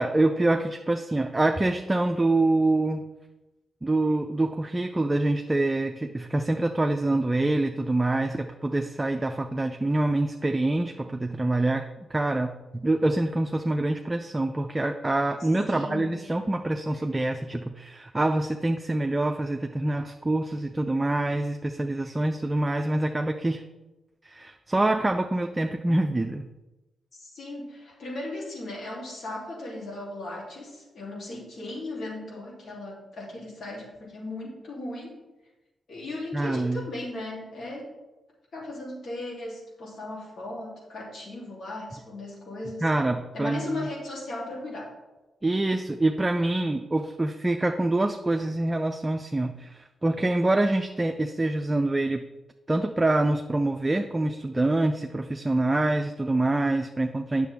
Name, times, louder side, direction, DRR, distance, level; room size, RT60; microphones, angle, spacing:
voice 1, 0.0-3.1 3.8-23.6 24.2-26.5 36.3-36.9 42.8-43.9 45.4-52.2 52.7-57.5, right 2 dB, 25° right, 5 dB, 0.5 m, -25 dB
voice 2, 15.4-16.2 27.1-35.2 35.9-37.9 38.5-42.9 43.3-44.9, left 2 dB, 65° left, -4 dB, 2.9 m, -37 dB
8.2 x 6.6 x 3.5 m, 1.1 s
supercardioid pair, 50°, 0 cm